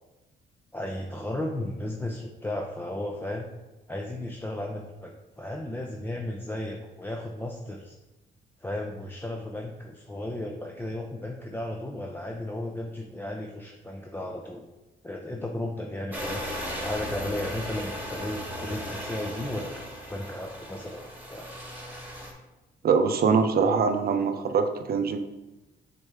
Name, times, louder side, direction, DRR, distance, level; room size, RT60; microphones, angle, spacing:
voice 1, 0.7-3.5 3.9-8.0 8.6-14.6 15.0-16.4 16.8-21.0 21.3-21.5, left 1 dB, 10° left, 0 dB, 0.6 m, -34 dB
sound 1, 16.1-22.3, equal, 10° right, 1.7 m, -37 dB
voice 2, 22.8-25.2, right 5 dB, 50° right, 7 dB, 0.7 m, -23 dB
6.5 x 4.3 x 3.6 m, 1.0 s
cardioid pair, 90°, 20 cm